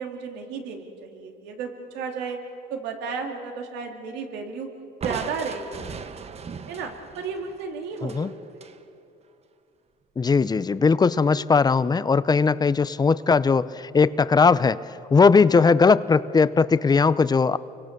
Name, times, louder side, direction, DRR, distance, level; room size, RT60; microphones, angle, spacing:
voice 1, 0.0-2.4 2.7-4.7 5.0-6.3 6.7-8.6, right 5 dB, 85° right, 3 dB, 2.9 m, -33 dB
Crushing, 5.0-8.8, right 6 dB, 40° right, 1.2 m, -38 dB
voice 2, 10.2-14.8 15.1-17.6, left 5 dB, 25° left, 16 dB, 0.6 m, -19 dB
28.5 x 23.5 x 6.8 m, 2.6 s
cardioid pair, 110°, 17 cm